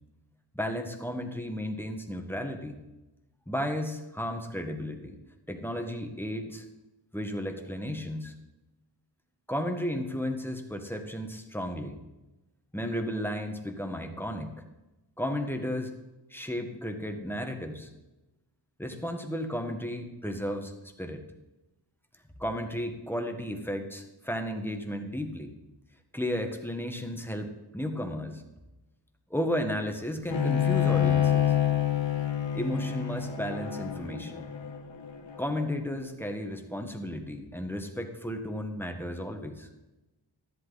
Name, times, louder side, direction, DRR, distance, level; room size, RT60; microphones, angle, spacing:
voice 1, 0.5-2.8 3.5-5.2 5.5-6.6 7.1-8.3 9.5-12.0 12.7-14.6 15.2-15.9 16.3-17.9 18.8-20.7 21.0-21.2 22.4-25.5 26.1-28.4 29.3-31.5 32.5-34.4 35.4-39.7, equal, 5° left, 4 dB, 1.6 m, -33 dB
Bowed string instrument, 30.3-35.6, left 10 dB, 85° left, 1.4 m, -27 dB
13.0 x 11.5 x 4.1 m, 1.0 s
wide cardioid pair, 100°, 42 cm